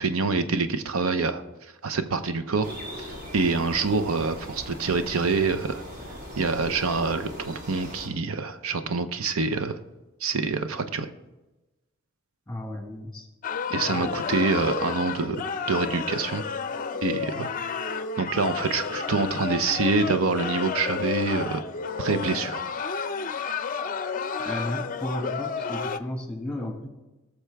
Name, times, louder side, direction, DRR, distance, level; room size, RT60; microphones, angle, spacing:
voice 1, 0.0-5.8 6.4-9.8 10.2-11.1 13.7-16.4 17.0-17.5 18.2-21.6 22.0-22.7, right 4 dB, 75° right, 10 dB, 0.7 m, -26 dB
sound 1, 2.6-8.1, equal, 45° right, 2.2 m, -39 dB
voice 2, 12.5-13.3 13.8-14.1 24.4-26.9, left 1 dB, 5° left, 3 dB, 1.8 m, -34 dB
sound 2, 13.4-26.0, left 5 dB, 40° left, 0.5 m, -31 dB
19.5 x 6.8 x 3.4 m, 1.1 s
head